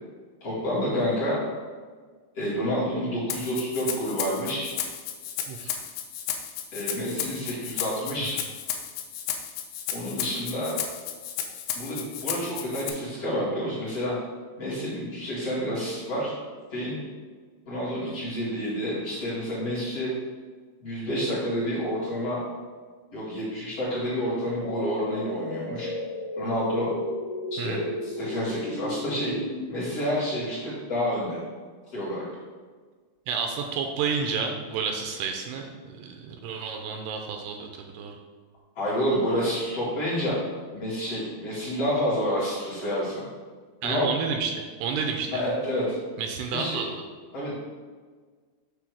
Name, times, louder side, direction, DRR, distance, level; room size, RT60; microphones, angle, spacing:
voice 1, 0.4-1.4 2.3-4.7 6.7-8.4 9.9-10.7 11.7-14.1 14.6-16.3 16.7-17.0 17.7-20.1 20.8-22.4 23.1-25.9 26.4-26.9 27.5-29.3 29.7-31.4 31.9-32.2 38.8-40.4 40.7-43.2 43.8-44.1 45.3-46.0 46.5-46.8 47.3-47.5, equal, 40° left, -10 dB, 2.7 m, -29 dB
Rattle (instrument), 3.3-12.9, left 9 dB, 90° left, 2.9 m, -33 dB
voice 2, 5.5-5.8 27.6-27.8 33.3-38.2 43.8-44.5 44.8-45.4 46.2-46.9, right 6 dB, 85° right, 3 dB, 2.6 m, -30 dB
sound 1, 24.6-29.7, left 1 dB, 65° left, 2.5 m, -34 dB
8.3 x 3.5 x 6.3 m, 1.5 s
omnidirectional pair, 5.1 m